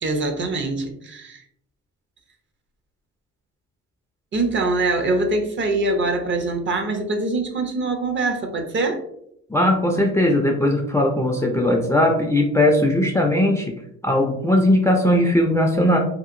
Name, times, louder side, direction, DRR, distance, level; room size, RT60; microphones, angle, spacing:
voice 1, 0.0-1.4 4.3-9.0, right 2 dB, 40° right, 5 dB, 0.6 m, -23 dB
voice 2, 9.5-13.8 14.0-16.0, left 1 dB, 10° left, 1 dB, 0.4 m, -19 dB
2.8 x 2.5 x 2.5 m, 0.74 s
cardioid pair, 90°, 30 cm